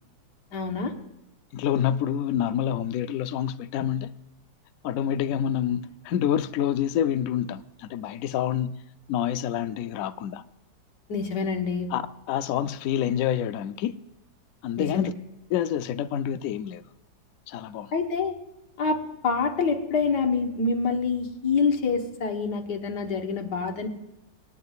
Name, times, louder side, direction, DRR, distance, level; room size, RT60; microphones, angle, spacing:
voice 1, 0.5-0.9 11.1-11.9 14.8-15.1 17.9-18.4 18.8-23.9, left 4 dB, 65° left, 1.8 m, -26 dB
voice 2, 1.5-4.1 4.8-8.8 9.1-10.4 11.9-12.0 12.3-13.9 14.6-15.1 15.5-16.8 17.5-17.9, left 10 dB, 90° left, 0.7 m, -27 dB
25.0 x 9.5 x 2.4 m
omnidirectional pair, 2.0 m